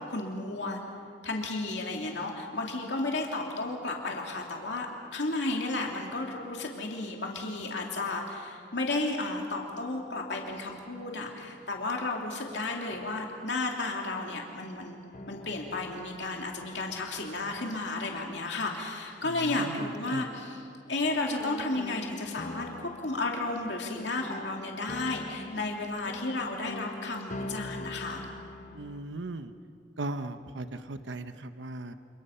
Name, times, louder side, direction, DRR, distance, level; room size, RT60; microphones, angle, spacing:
voice 1, 0.1-0.8 1.2-4.9 5.1-20.6 20.9-28.2, left 2 dB, 75° left, 0 dB, 2.6 m, -33 dB
sound 1, 12.9-13.9 15.1-18.4 21.1-29.0, left 1 dB, 45° left, 1.1 m, -44 dB
voice 2, 19.2-20.2 28.7-29.5 30.0-31.9, right 2 dB, 85° right, 9 dB, 0.9 m, -38 dB
28.5 x 28.0 x 5.7 m, 2.5 s
head